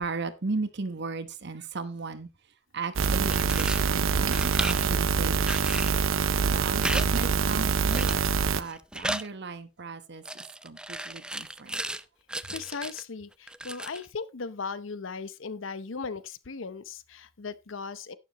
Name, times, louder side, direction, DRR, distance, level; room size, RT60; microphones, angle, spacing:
voice 1, 0.0-2.3 2.7-6.0 6.5-8.2 8.5-11.9, right 3 dB, 60° right, 1.1 m, -36 dB
sound 1, 3.0-8.6, right 5 dB, 85° right, 0.7 m, -25 dB
sound 2, 3.3-3.9 4.3-4.9 5.5-6.0 6.8-7.1 7.3-7.4 7.9-8.3 8.6-9.3 10.3-12.0 12.3-13.0 13.5-14.1, right 1 dB, 5° right, 0.4 m, -34 dB
voice 2, 12.5-18.2, left 5 dB, 75° left, 0.7 m, -37 dB
11.5 x 9.8 x 3.0 m
head